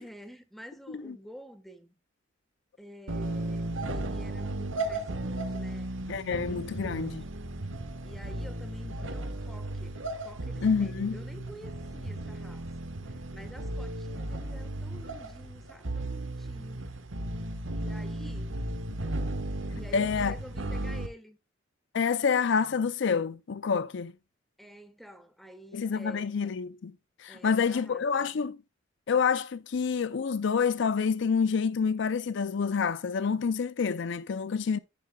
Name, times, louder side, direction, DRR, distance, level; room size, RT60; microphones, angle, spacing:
voice 1, 0.0-2.0 2.8-5.9 6.3-7.1 8.0-16.8 17.8-18.5 19.7-21.4 24.6-26.3 27.3-28.3, equal, ahead, 1.3 m, -49 dB
sound 1, 3.1-21.1, right 1 dB, 85° right, 1.3 m, -35 dB
voice 2, 6.1-7.2 10.6-11.2 19.9-20.4 21.9-24.1 25.7-26.9 27.2-28.6 29.1-34.8, left 6 dB, 65° left, 0.4 m, -28 dB
10.5 x 9.3 x 2.3 m
head